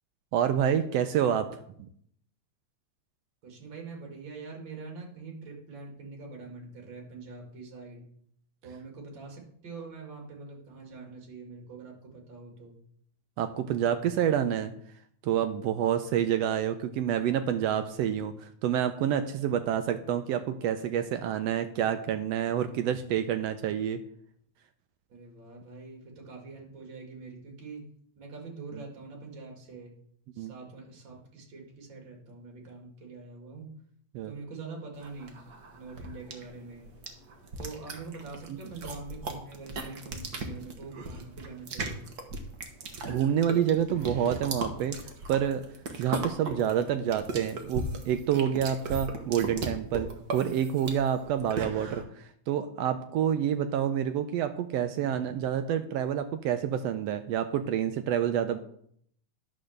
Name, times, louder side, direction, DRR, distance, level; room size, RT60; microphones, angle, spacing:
voice 1, 0.3-1.5 13.4-14.7 15.2-24.0 30.4-30.5 34.1-34.3 43.1-45.0 45.3-45.6 46.0-58.6, right 9 dB, 80° right, 9 dB, 1.5 m, -28 dB
voice 2, 3.4-8.0 8.6-12.8 25.1-27.8 28.2-29.9 30.3-33.7 34.2-35.4 35.7-36.9 37.6-42.1, right 4 dB, 40° right, 1 dB, 2.7 m, -44 dB
sound 1, 35.0-52.0, right 2 dB, 60° right, 1.0 m, -37 dB
11.0 x 5.0 x 6.5 m, 0.66 s
omnidirectional pair, 3.4 m